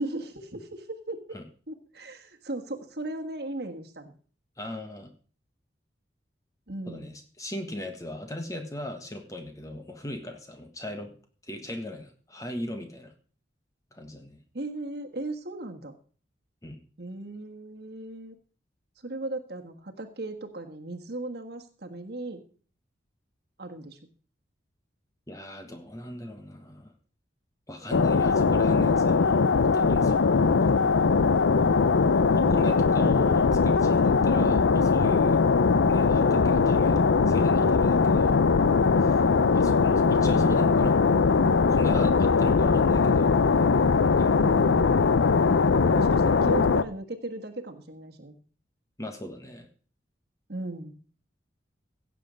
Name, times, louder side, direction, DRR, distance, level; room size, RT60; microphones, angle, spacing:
voice 1, 0.0-1.2 1.7-4.1 6.7-7.2 14.5-16.0 17.0-18.3 19.0-22.4 23.6-24.0 32.4-32.7 44.4-45.0 45.7-48.4 50.5-51.0, right 2 dB, 55° right, 5 dB, 1.5 m, -37 dB
voice 2, 4.6-5.1 6.8-11.1 11.4-13.1 13.9-14.4 16.6-16.8 25.3-26.9 27.7-29.5 29.7-30.9 32.4-35.4 35.9-37.0 37.3-38.4 39.0-39.2 39.5-41.0 41.7-43.3 44.2-44.4 49.0-49.7, left 1 dB, 15° left, 5 dB, 1.5 m, -38 dB
sound 1, 27.9-46.8, left 4 dB, 85° left, 0.5 m, -21 dB
16.0 x 7.6 x 5.2 m, 0.42 s
head